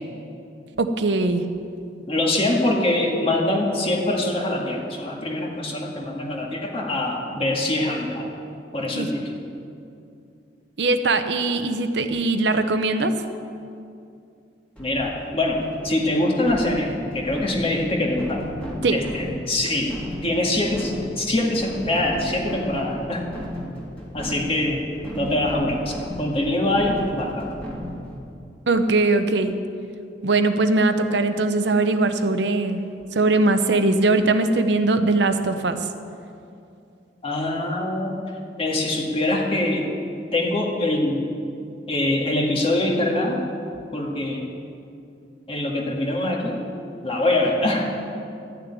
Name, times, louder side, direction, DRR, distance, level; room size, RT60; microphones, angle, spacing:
voice 1, 0.8-1.4 9.0-9.1 10.8-13.2 18.8-19.0 28.7-29.5 30.2-32.8 33.1-35.8, right 2 dB, 70° right, 8 dB, 0.8 m, -20 dB
voice 2, 2.1-8.4 8.7-9.4 14.8-18.5 18.9-19.9 20.2-23.3 24.1-24.8 25.1-27.6 37.2-38.2 38.6-39.9 40.3-41.3 41.9-43.5 43.9-44.4 45.5-46.6 47.0-48.0, left 1 dB, 30° left, -1 dB, 1.9 m, -24 dB
sound 1, 14.8-28.3, equal, 5° left, 2.1 m, -35 dB
13.5 x 6.9 x 9.7 m, 2.6 s
head